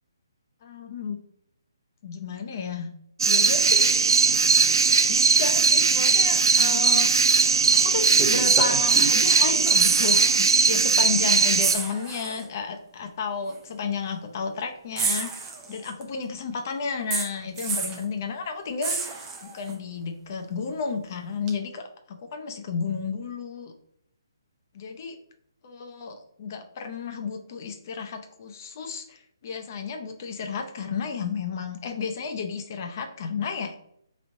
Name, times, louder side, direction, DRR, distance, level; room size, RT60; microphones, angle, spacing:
voice 1, 0.6-1.2 2.0-2.9 3.2-3.9 5.1-7.4 7.7-19.1 19.4-23.7 24.8-25.2 25.6-33.7, left 5 dB, 40° left, 5 dB, 0.6 m, -32 dB
sound 1, 3.2-11.7, right 5 dB, 70° right, 0.3 m, -19 dB
sound 2, 7.3-7.4 8.2-9.3 9.5-10.4 10.7-10.8 11.6-12.4 13.5-13.6 15.0-16.0 17.1-18.0 18.8-19.7 21.5-21.6, right 5 dB, 20° right, 0.6 m, -30 dB
4.0 x 3.1 x 2.6 m, 0.72 s
figure-of-eight pair, 145°, 2 cm